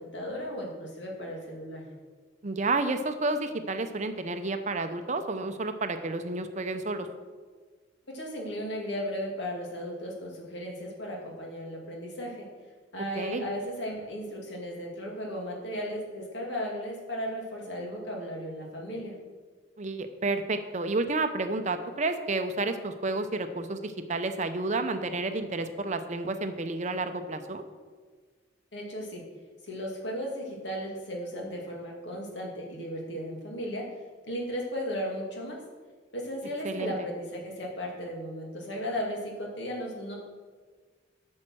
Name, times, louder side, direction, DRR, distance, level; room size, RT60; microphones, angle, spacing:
voice 1, 0.0-1.9 8.1-12.5 12.9-19.2 28.7-29.2 29.6-33.9 34.3-35.6 36.1-40.2, equal, 65° left, -1 dB, 2.3 m, -35 dB
voice 2, 2.4-7.1 13.2-13.4 19.8-27.6 36.6-36.9, right 3 dB, 40° right, 8 dB, 0.6 m, -30 dB
8.8 x 6.4 x 6.2 m, 1.5 s
head